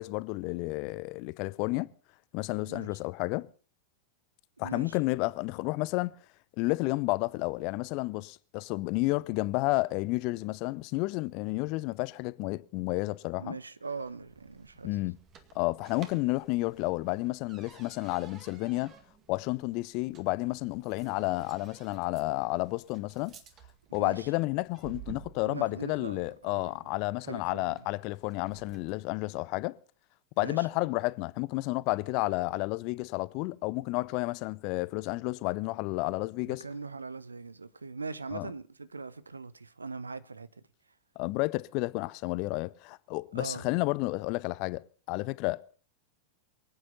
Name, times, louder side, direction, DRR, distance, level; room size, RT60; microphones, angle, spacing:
voice 1, 0.0-1.9 2.3-3.5 4.6-6.1 6.6-13.6 14.8-15.2 15.5-18.9 19.3-23.3 23.9-29.8 30.4-36.6 38.3-38.5 41.2-45.6, left 22 dB, 45° left, 0.6 m, -31 dB
voice 2, 4.6-5.0 13.4-15.0 24.0-24.3 25.4-26.7 27.2-27.9 30.4-30.7 36.4-40.6 43.3-43.7, right 4 dB, 80° right, 0.8 m, -41 dB
sound 1, 14.0-29.0, right 8 dB, 30° right, 2.0 m, -54 dB
24.5 x 8.9 x 5.5 m
figure-of-eight pair, 90°, 0 cm